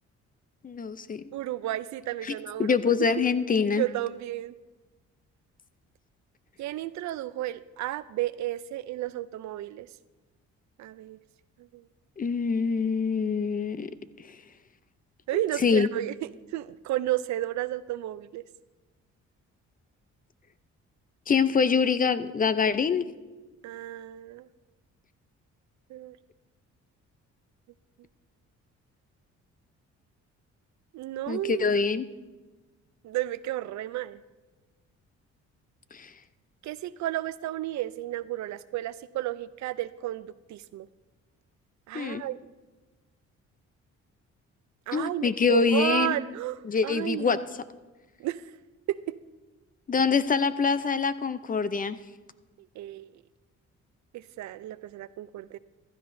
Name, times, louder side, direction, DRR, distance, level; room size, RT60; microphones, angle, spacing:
voice 1, 0.6-1.2 2.2-3.8 12.2-13.9 14.2-14.4 15.3-15.9 21.3-23.1 31.3-32.1 35.9-36.1 41.9-42.2 44.9-46.1 46.6-47.4 49.9-52.0, left 5 dB, 30° left, 14 dB, 0.5 m, -25 dB
voice 2, 1.3-2.9 3.8-4.5 6.6-9.9 10.8-11.2 11.7-11.8 15.3-16.1 16.5-18.4 23.6-24.5 25.9-26.2 30.9-31.7 33.0-34.2 36.6-40.9 41.9-42.4 44.9-47.4 48.2-48.4 48.9-49.0 52.8-53.1 54.1-55.6, right 14 dB, 65° right, 16 dB, 0.4 m, -32 dB
15.0 x 12.5 x 2.6 m, 1.2 s
cardioid pair, 90°, 30 cm